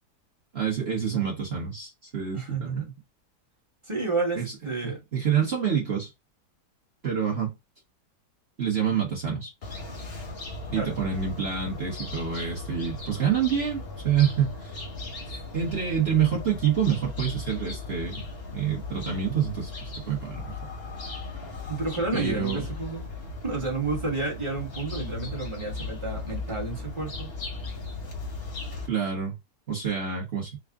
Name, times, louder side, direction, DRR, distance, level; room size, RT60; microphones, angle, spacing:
voice 1, 0.5-2.9 4.3-4.5 4.8-6.1 7.0-7.5 8.6-9.5 10.7-14.8 15.3-18.2 18.5-20.6 22.1-22.7 28.9-29.3 29.7-30.6, right 8 dB, 40° right, 1.2 m, -27 dB
voice 2, 2.3-2.9 3.9-5.0 10.7-11.0 21.7-23.1 23.4-27.3, right 3 dB, 20° right, 1.1 m, -31 dB
sound 1, 9.6-28.9, left 3 dB, 45° left, 1.0 m, -37 dB
3.7 x 2.3 x 3.5 m
omnidirectional pair, 1.8 m